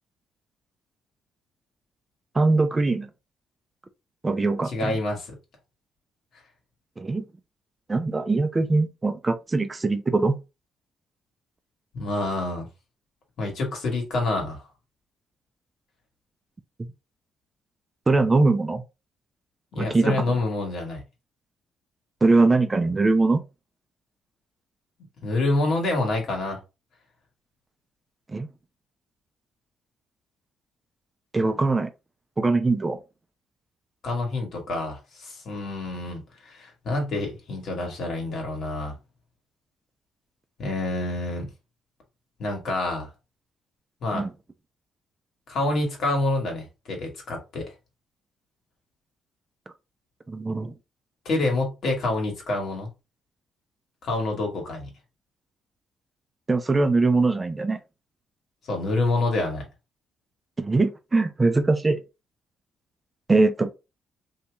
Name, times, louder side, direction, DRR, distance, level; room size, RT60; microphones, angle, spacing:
voice 1, 2.3-3.1 4.2-5.0 7.0-7.2 7.9-10.4 18.1-18.8 19.8-20.3 22.2-23.4 28.3-28.5 31.3-31.9 32.4-33.0 44.1-44.3 50.3-50.7 56.5-57.8 60.6-62.0 63.3-63.7, right 3 dB, 25° right, 0.4 m, -22 dB
voice 2, 4.6-5.4 11.9-12.7 13.4-14.6 19.7-21.0 25.2-26.6 34.0-39.0 40.6-41.5 42.4-43.1 44.0-44.3 45.5-47.7 51.2-52.9 54.0-54.9 58.7-59.7, left 2 dB, 65° left, 1.6 m, -27 dB
2.8 x 2.8 x 3.4 m
cardioid pair, 90°, 0 cm